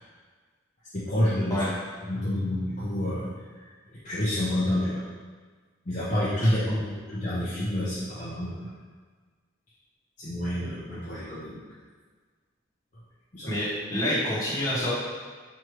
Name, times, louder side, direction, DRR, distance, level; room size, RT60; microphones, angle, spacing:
voice 1, 0.9-1.6 2.0-3.3 4.0-5.0 5.9-8.7 10.2-11.6 13.3-13.5, left 1 dB, 35° left, -10 dB, 0.6 m, -28 dB
voice 2, 13.5-14.9, left 1 dB, 15° left, -9 dB, 1.0 m, -27 dB
4.5 x 2.6 x 3.1 m, 1.5 s
head